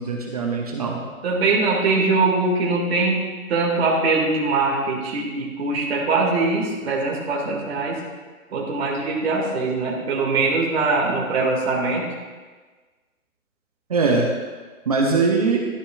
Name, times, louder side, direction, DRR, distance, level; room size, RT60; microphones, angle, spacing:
voice 1, 0.0-1.0 13.9-14.3 14.9-15.6, right 4 dB, 25° right, 0 dB, 0.7 m, -21 dB
voice 2, 1.2-8.0 8.5-12.1, right 3 dB, 45° right, -2 dB, 2.0 m, -22 dB
13.0 x 6.8 x 2.3 m, 1.4 s
hypercardioid pair, 155°, 42 cm